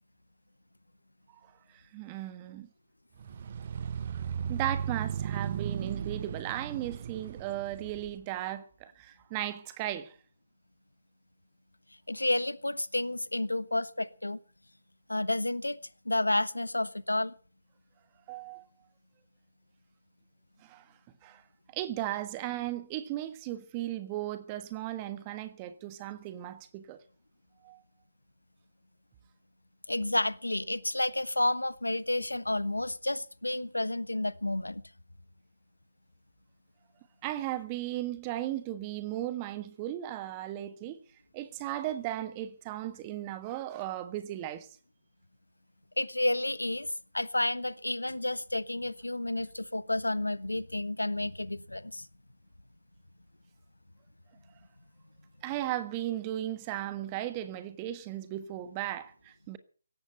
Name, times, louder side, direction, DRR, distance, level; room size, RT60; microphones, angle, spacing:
voice 1, 1.7-2.7 4.5-10.1 18.3-18.6 20.6-20.9 21.2-21.4 21.7-27.0 27.6-27.8 37.2-41.0 41.3-44.7 55.4-59.6, right 13 dB, 20° right, 1.4 m, -36 dB
sound 1, 3.2-8.2, right 7 dB, 40° right, 0.8 m, -36 dB
voice 2, 12.1-14.4 15.1-15.8 16.0-17.3 29.9-34.8 46.0-52.1, left 1 dB, 85° left, 1.2 m, -30 dB
17.0 x 14.0 x 5.6 m
figure-of-eight pair, 150°, 0 cm